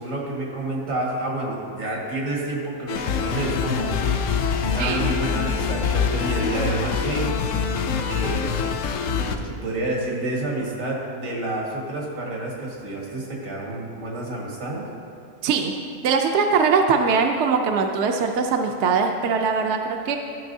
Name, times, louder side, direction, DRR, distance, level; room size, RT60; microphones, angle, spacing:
voice 1, 0.0-3.9 4.6-7.3 7.9-8.5 8.9-14.9, right 1 dB, 85° right, -3 dB, 2.0 m, -29 dB
sound 1, 2.9-9.4, left 6 dB, 75° left, 0.9 m, -25 dB
voice 2, 15.4-15.7 16.0-20.2, right 5 dB, 65° right, 4 dB, 0.8 m, -21 dB
14.0 x 6.0 x 2.7 m, 2.5 s
omnidirectional pair, 1.4 m